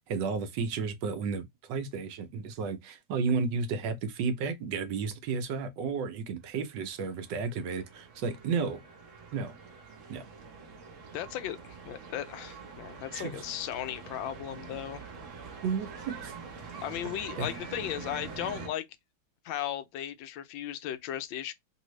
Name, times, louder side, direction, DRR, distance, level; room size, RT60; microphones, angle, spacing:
voice 1, 0.1-8.8 9.3-9.5 10.1-10.2 13.1-13.4 15.6-16.3 17.4-17.5, right 5 dB, 75° right, 1.3 m, -32 dB
sound 1, 6.6-18.7, right 5 dB, 50° right, 1.2 m, -45 dB
voice 2, 11.1-15.1 16.8-18.9 19.4-21.5, left 11 dB, 90° left, 1.4 m, -36 dB
3.3 x 2.7 x 3.1 m
omnidirectional pair, 2.0 m